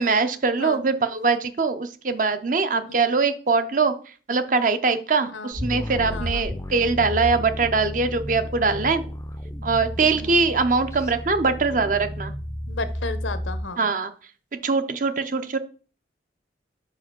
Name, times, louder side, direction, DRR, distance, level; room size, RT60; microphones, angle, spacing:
voice 1, 0.0-9.0 9.6-12.3 13.8-14.1 14.6-15.6, right 4 dB, 45° right, 10 dB, 0.6 m, -22 dB
sound 1, 5.5-13.7, equal, 15° left, 0.4 m, -32 dB
voice 2, 6.1-6.5 10.0-10.4 12.7-13.9, left 3 dB, 85° left, 11 dB, 0.9 m, -34 dB
5.2 x 4.9 x 5.9 m, 0.39 s
head